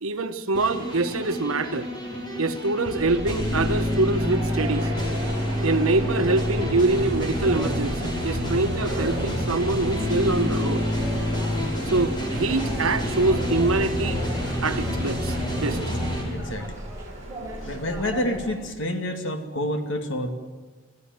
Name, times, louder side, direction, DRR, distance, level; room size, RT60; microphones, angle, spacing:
voice 1, 0.0-1.9 2.4-4.9 5.6-10.8 11.9-14.2 14.6-15.8, right 2 dB, 85° right, 9 dB, 1.3 m, -24 dB
sound 1, 0.5-16.2, left 1 dB, 20° left, 5.3 m, -28 dB
sound 2, 3.0-18.6, right 1 dB, 15° right, 4.8 m, -37 dB
sound 3, 4.6-17.8, right 1 dB, 35° right, 6.9 m, -40 dB
voice 2, 16.3-16.7 17.6-20.3, left 1 dB, 60° left, 6 dB, 2.5 m, -28 dB
24.5 x 15.0 x 9.6 m, 1.3 s
head